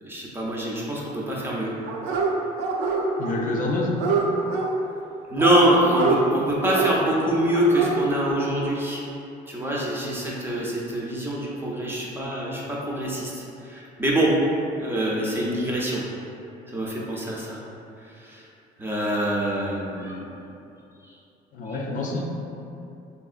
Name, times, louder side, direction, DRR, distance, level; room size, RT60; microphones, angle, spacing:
voice 1, 0.0-1.7 5.3-9.0 9.5-14.3 14.8-16.0 16.7-17.6 18.0-18.5 18.8-20.2 21.0-21.1 21.7-21.8, right 1 dB, 15° right, -5 dB, 0.5 m, -25 dB
Dog, 1.8-2.3 2.6-3.4 3.6-4.7 5.4-6.2 6.7-6.9 7.5-7.9 8.2-8.3, right 5 dB, 80° right, 0.4 m, -25 dB
voice 2, 3.2-4.0 21.5-22.2, left 2 dB, 50° left, -1 dB, 0.4 m, -27 dB
3.4 x 2.6 x 2.4 m, 2.7 s
cardioid pair, 110°, 17 cm